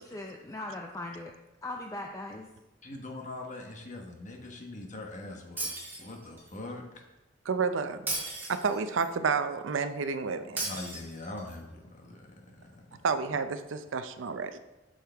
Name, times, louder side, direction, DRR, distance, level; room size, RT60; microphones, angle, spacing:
voice 1, 0.0-1.3 1.6-2.5, left 2 dB, 15° left, 1 dB, 0.4 m, -39 dB
voice 2, 2.8-5.7 6.0-6.8 10.6-13.0, left 2 dB, 40° left, 1 dB, 1.1 m, -42 dB
Shatter, 5.6-6.5 8.1-9.1 10.6-11.6, right 2 dB, 10° right, 2.1 m, -36 dB
voice 3, 7.5-8.0 8.5-10.6 13.0-14.6, right 5 dB, 85° right, 10 dB, 0.5 m, -30 dB
8.1 x 6.4 x 3.4 m, 1.0 s
head